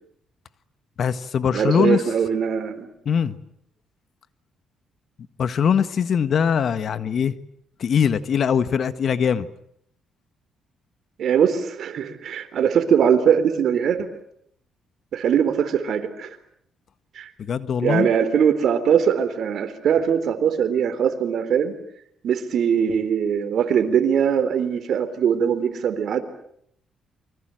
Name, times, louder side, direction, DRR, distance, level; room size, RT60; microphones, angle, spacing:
voice 1, 1.0-2.0 3.0-3.4 5.4-7.3 7.8-9.5 17.4-18.1, left 7 dB, 55° left, 13 dB, 1.6 m, -21 dB
voice 2, 1.5-2.9 11.2-14.0 15.1-16.4 17.2-17.3 17.8-21.7 22.2-26.2, right 8 dB, 65° right, 9 dB, 3.8 m, -21 dB
29.0 x 25.0 x 7.8 m, 0.70 s
cardioid pair, 90°, 0 cm